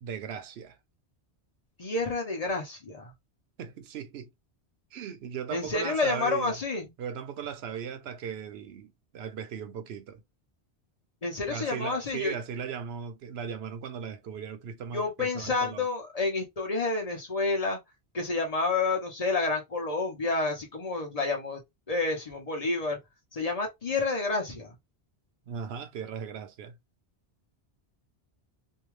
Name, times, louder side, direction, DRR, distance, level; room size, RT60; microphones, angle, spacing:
voice 1, 0.0-0.8 3.6-4.3 4.9-6.6 7.0-10.2 11.5-15.9 25.5-26.8, right 7 dB, 75° right, 0.8 m, -38 dB
voice 2, 1.8-3.1 5.5-6.9 11.2-12.3 14.9-17.8 18.1-21.6 21.9-23.0 23.3-24.8, left 3 dB, 35° left, 0.9 m, -29 dB
2.7 x 2.3 x 3.1 m
omnidirectional pair, 1.1 m